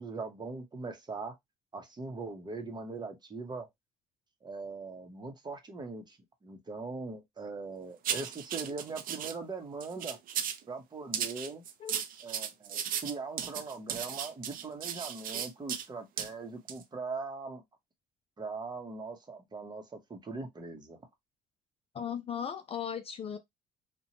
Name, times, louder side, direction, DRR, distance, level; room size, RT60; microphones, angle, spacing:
voice 1, 0.0-1.3 1.7-3.7 4.4-10.2 10.7-11.6 12.2-17.6 18.4-21.0, right 4 dB, 25° right, 0.8 m, -41 dB
sound 1, 8.0-9.3 9.8-10.6 11.1-15.9 16.2-16.3 16.7-16.8, right 9 dB, 55° right, 0.5 m, -36 dB
voice 2, 21.9-23.4, left 8 dB, 35° left, 0.4 m, -37 dB
2.8 x 2.1 x 2.7 m
cardioid pair, 110°, 17 cm